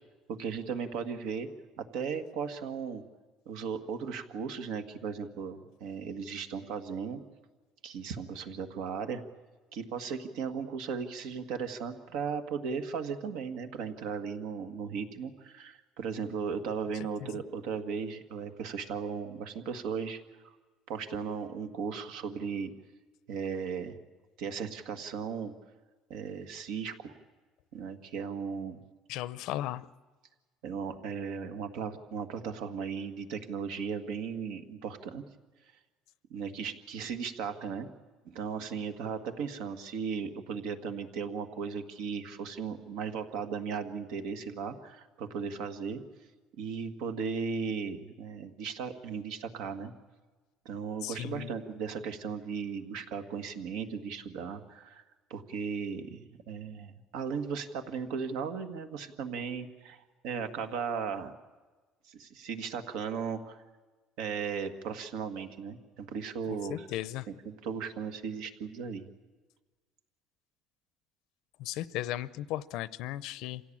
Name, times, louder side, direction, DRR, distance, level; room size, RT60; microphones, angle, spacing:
voice 1, 0.3-1.5 1.8-3.0 3.4-7.2 7.8-9.2 9.7-20.2 20.9-22.7 23.3-24.0 24.4-25.5 26.1-27.1 27.7-28.8 30.6-35.2 36.3-37.9 38.2-46.0 46.6-49.9 50.6-55.0 55.3-61.3 62.1-63.6 64.2-66.9 67.4-69.0, right 6 dB, 75° right, 7 dB, 1.8 m, -36 dB
voice 2, 29.1-29.9 51.0-51.5 66.7-67.3 71.6-73.6, left 14 dB, 70° left, 17 dB, 0.6 m, -36 dB
27.0 x 17.0 x 8.7 m, 1.3 s
cardioid pair, 155°, 0 cm